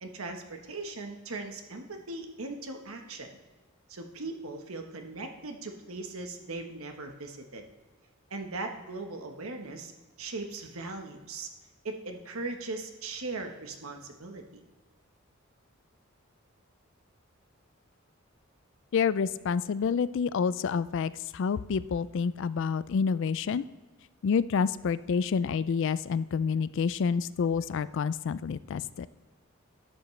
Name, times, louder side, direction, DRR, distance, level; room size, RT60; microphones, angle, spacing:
voice 1, 0.0-3.3 3.9-7.6 8.3-9.9 10.2-11.5 11.8-14.6, right 3 dB, 85° right, 4 dB, 1.2 m, -39 dB
voice 2, 18.9-23.6 24.2-29.1, left 6 dB, 60° left, 16 dB, 0.3 m, -28 dB
11.5 x 7.2 x 3.2 m, 1.2 s
head